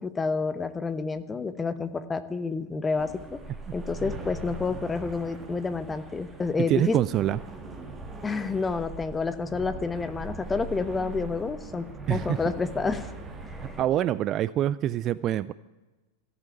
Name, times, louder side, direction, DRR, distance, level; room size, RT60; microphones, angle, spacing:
voice 1, 0.0-3.4 3.7-7.0 8.2-13.1 13.5-13.8, left 4 dB, 15° left, 11 dB, 1.0 m, -29 dB
sound 1, 3.0-13.8, right 2 dB, 15° right, 1.8 m, -40 dB
voice 2, 6.7-7.4 12.1-12.4 13.8-15.5, right 12 dB, 30° right, 17 dB, 0.4 m, -25 dB
14.0 x 8.1 x 9.7 m, 1.1 s
figure-of-eight pair, 90°, 0 cm